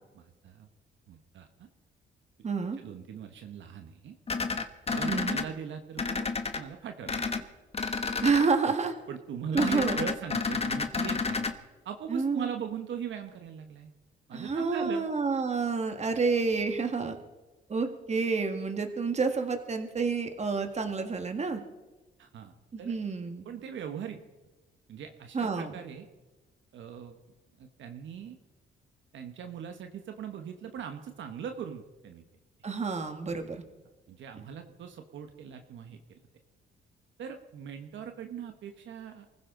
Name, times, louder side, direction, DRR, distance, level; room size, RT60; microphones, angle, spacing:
voice 1, 0.2-0.7 1.1-1.7 2.8-4.2 4.9-6.3 6.5-7.2 9.1-11.5 11.8-13.9 14.3-15.1 22.2-23.0 23.4-24.2 24.9-26.1 26.7-27.2 27.6-28.4 29.1-32.2 34.1-36.2 37.2-39.3, right 8 dB, 70° right, 6 dB, 1.3 m, -40 dB
voice 2, 2.4-2.8 5.1-5.4 8.2-8.9 9.5-10.0 12.1-12.5 14.3-17.2 17.7-21.6 22.7-23.4 25.3-25.7 32.6-33.6, right 4 dB, 35° right, 6 dB, 1.9 m, -29 dB
sound 1, 4.3-5.4 6.0-6.6 7.1-7.4 7.7-8.5 9.6-11.5, left 4 dB, 30° left, 1.3 m, -30 dB
24.0 x 15.5 x 3.9 m, 1.2 s
cardioid pair, 90°, 20 cm